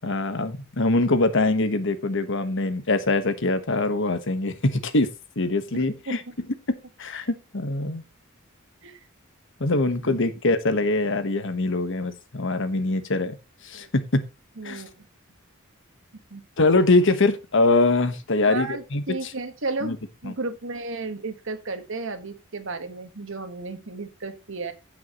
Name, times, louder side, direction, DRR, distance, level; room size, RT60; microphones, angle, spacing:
voice 1, 0.0-5.1 5.4-6.2 7.0-8.0 9.6-13.3 13.6-14.3 14.6-14.8 16.6-19.3 19.8-20.0 20.2-20.3, left 2 dB, 65° left, 10 dB, 1.3 m, -23 dB
voice 2, 5.7-6.2 8.8-9.0 10.0-10.2 13.7-13.9 14.6-15.0 16.3-16.4 18.4-19.9 20.2-24.7, right 3 dB, 65° right, 7 dB, 1.5 m, -33 dB
16.0 x 5.7 x 3.0 m, 0.26 s
head